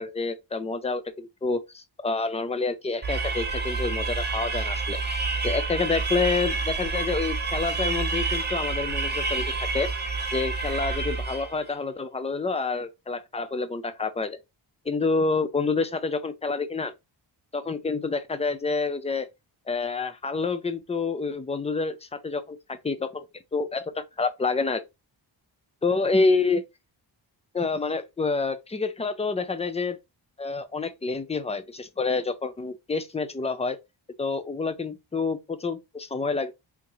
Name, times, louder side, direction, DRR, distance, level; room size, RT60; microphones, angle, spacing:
voice 1, 0.0-5.0 5.4-9.9 10.3-14.4 14.9-16.9 17.5-19.3 19.7-23.3 23.5-24.8 25.8-26.6 27.5-30.0 30.4-33.8 34.2-36.5, left 4 dB, 15° left, 0.4 m, -28 dB
sound 1, 3.0-11.6, right 4 dB, 20° right, 0.7 m, -28 dB
3.6 x 2.8 x 3.0 m
wide cardioid pair, 105°, 47 cm